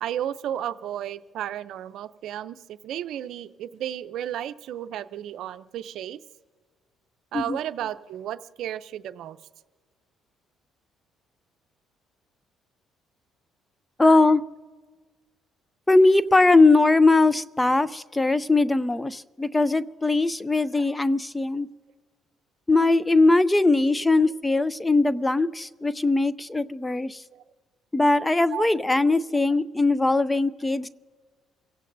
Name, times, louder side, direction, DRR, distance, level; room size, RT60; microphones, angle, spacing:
voice 1, 0.0-6.2 7.3-9.4 27.3-27.4 28.5-28.7, right 11 dB, 70° right, 12 dB, 0.6 m, -33 dB
voice 2, 14.0-14.4 15.9-21.7 22.7-27.2 27.9-30.9, left 2 dB, 15° left, 16 dB, 0.5 m, -20 dB
29.5 x 16.5 x 2.7 m, 1.4 s
cardioid pair, 90°, 0 cm